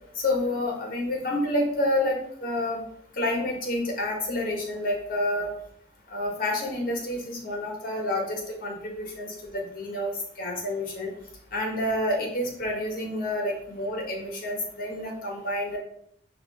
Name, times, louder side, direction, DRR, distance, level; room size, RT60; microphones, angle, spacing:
voice 1, 0.2-2.8 3.2-5.5 6.1-10.1 10.4-11.1 11.5-15.8, left 1 dB, 55° left, 0 dB, 1.7 m, -29 dB
5.8 x 3.2 x 5.6 m, 0.68 s
head